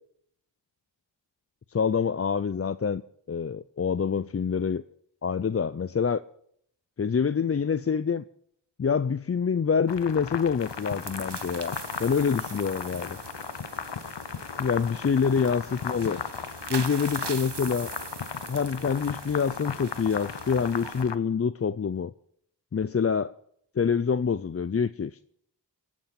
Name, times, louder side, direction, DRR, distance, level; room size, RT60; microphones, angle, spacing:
voice 1, 1.7-3.0 3.3-4.8 5.2-6.2 7.0-8.2 8.8-13.2 14.6-16.2 16.7-17.9 18.5-22.1 22.7-23.3 23.8-25.2, left 6 dB, 35° left, 0.5 m, -26 dB
sound 1, 9.9-21.2, left 7 dB, 70° left, 1.0 m, -37 dB
sound 2, 10.6-21.0, right 4 dB, 65° right, 1.6 m, -42 dB
23.0 x 8.9 x 5.8 m
cardioid pair, 40°, 44 cm